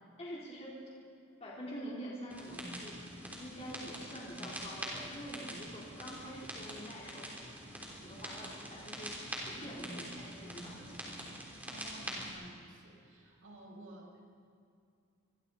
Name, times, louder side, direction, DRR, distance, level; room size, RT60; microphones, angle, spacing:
voice 1, 0.2-0.8 1.4-3.0 3.4-7.3 8.0-9.2 9.5-11.3, equal, 30° left, -5 dB, 3.8 m, -45 dB
sound 1, 2.3-12.3, right 1 dB, 10° right, 3.5 m, -45 dB
voice 2, 11.6-14.2, right 1 dB, 70° right, 0 dB, 5.0 m, -53 dB
27.0 x 22.5 x 4.2 m, 2.5 s
head